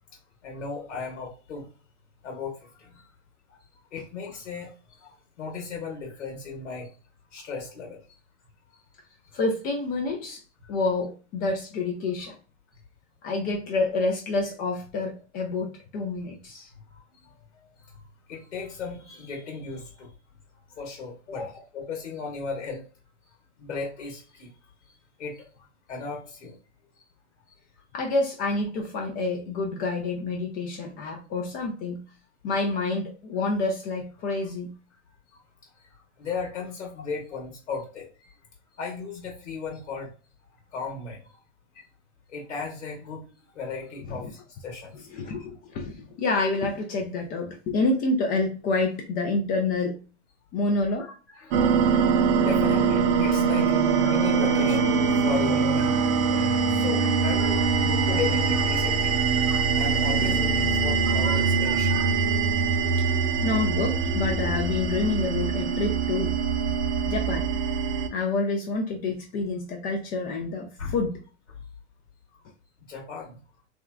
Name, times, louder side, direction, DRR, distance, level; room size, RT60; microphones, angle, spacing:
voice 1, 0.4-1.6 2.2-2.5 2.8-2.9 3.5-3.6 3.9-4.7 5.0-6.9 7.3-8.0 18.3-20.1 20.8-21.4 21.7-22.8 23.6-24.5 25.2-25.4 25.9-26.5 36.2-38.0 38.8-40.1 40.7-41.2 42.3-43.2 43.5-45.1 51.0-62.2 70.8-70.9 72.9-73.3, left 5 dB, 80° left, -1 dB, 1.1 m, -35 dB
voice 2, 9.3-10.4 10.7-12.4 13.2-16.7 21.3-21.5 27.9-32.0 32.4-34.7 44.1-44.3 45.1-50.0 50.5-51.0 51.5-51.9 63.4-66.4 67.1-67.5 68.1-71.2, left 3 dB, 25° left, 1 dB, 0.4 m, -28 dB
sound 1, 51.5-68.1, right 5 dB, 55° right, 0.5 m, -23 dB
3.6 x 2.2 x 2.3 m, 0.36 s
hypercardioid pair, 110°, 35 cm